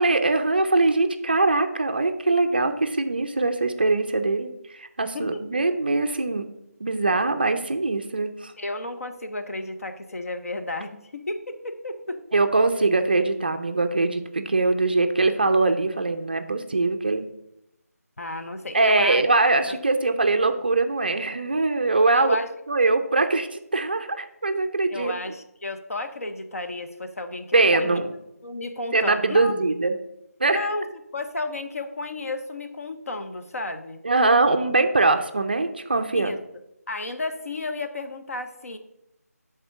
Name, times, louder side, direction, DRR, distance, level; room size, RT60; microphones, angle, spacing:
voice 1, 0.0-6.5 6.8-8.5 12.3-17.3 18.7-22.4 22.7-25.1 27.5-28.1 28.9-29.9 30.4-30.7 34.0-36.3, right 3 dB, 35° right, 8 dB, 0.4 m, -22 dB
voice 2, 8.6-12.2 18.2-19.2 19.6-19.7 22.1-22.5 24.9-28.0 28.4-29.5 30.5-34.0 36.1-36.4 36.9-38.8, left 2 dB, 60° left, 7 dB, 0.7 m, -32 dB
6.8 x 3.7 x 5.6 m, 0.82 s
figure-of-eight pair, 170°, 9 cm